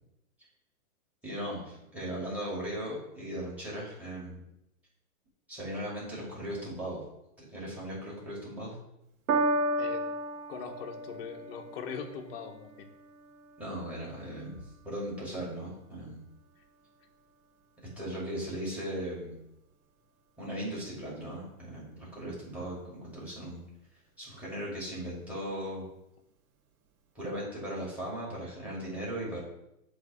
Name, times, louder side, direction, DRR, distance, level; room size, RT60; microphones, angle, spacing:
voice 1, 1.2-4.4 5.5-7.0 7.5-8.8 13.6-16.2 18.0-19.4 20.4-23.6 24.2-25.9 27.1-29.4, right 1 dB, 5° right, -5 dB, 2.4 m, -38 dB
Piano, 9.3-15.9 16.7-16.8, right 2 dB, 70° right, 1.1 m, -35 dB
voice 2, 10.5-12.9, left 6 dB, 40° left, 4 dB, 1.0 m, -41 dB
7.8 x 3.3 x 6.1 m, 0.84 s
hypercardioid pair, 155°, 44 cm